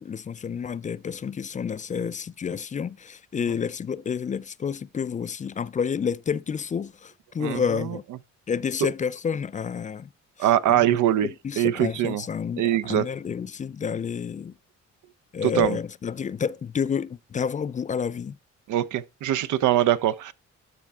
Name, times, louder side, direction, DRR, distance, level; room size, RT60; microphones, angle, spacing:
voice 1, 0.0-8.0 8.5-10.1 10.4-10.8 11.2-14.5 15.3-18.4, left 7 dB, 25° left, 0.3 m, -29 dB
voice 2, 7.4-8.0 8.8-8.9 10.4-11.3 11.6-12.2 12.6-13.1 15.4-15.8 18.7-20.3, right 12 dB, 80° right, 0.7 m, -23 dB
12.5 x 4.4 x 3.5 m
cardioid pair, 90°, 30 cm